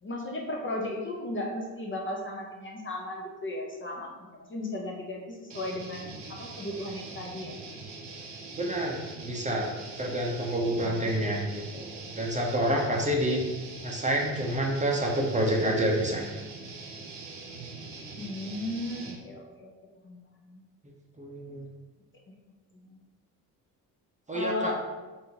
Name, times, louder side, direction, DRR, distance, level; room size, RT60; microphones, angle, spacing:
voice 1, 0.0-7.6 10.7-10.9 18.2-19.7 20.0-20.6 22.3-22.4 22.7-23.0 24.3-24.8, left 1 dB, 30° left, -1 dB, 0.6 m, -36 dB
sound 1, 5.5-19.2, right 3 dB, 65° right, 0.8 m, -43 dB
voice 2, 8.5-9.7 10.0-13.4 13.8-16.4 21.2-21.7 24.3-24.7, right 1 dB, 15° right, -1 dB, 0.6 m, -28 dB
3.4 x 2.7 x 2.8 m, 1.2 s
hypercardioid pair, 55°, 44 cm